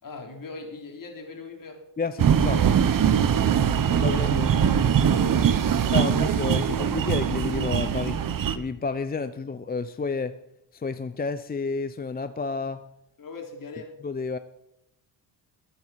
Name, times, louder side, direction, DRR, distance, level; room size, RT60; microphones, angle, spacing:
voice 1, 0.0-1.8 3.5-4.3 4.5-5.9 13.2-13.9, left 3 dB, 45° left, 2 dB, 3.6 m, -40 dB
voice 2, 2.0-2.7 3.9-4.5 5.9-8.2 8.5-10.3 10.7-12.8 14.0-14.4, left 4 dB, 20° left, 11 dB, 0.6 m, -30 dB
sound 1, 2.2-8.6, right 8 dB, 50° right, 1.1 m, -22 dB
21.0 x 7.6 x 5.8 m, 0.84 s
cardioid pair, 100°, 44 cm